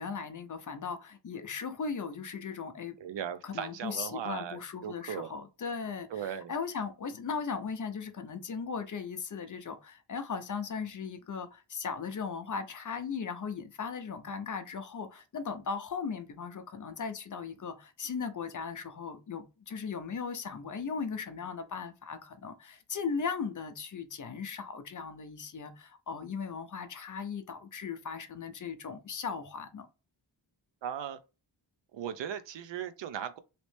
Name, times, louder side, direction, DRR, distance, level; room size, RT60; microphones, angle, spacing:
voice 1, 0.0-3.0 3.4-29.9, left 5 dB, 40° left, 0.5 m, -37 dB
voice 2, 3.0-5.3 6.1-6.5 30.8-31.2 31.9-33.4, right 9 dB, 70° right, 0.5 m, -38 dB
3.1 x 2.9 x 3.1 m
wide cardioid pair, 150°, 46 cm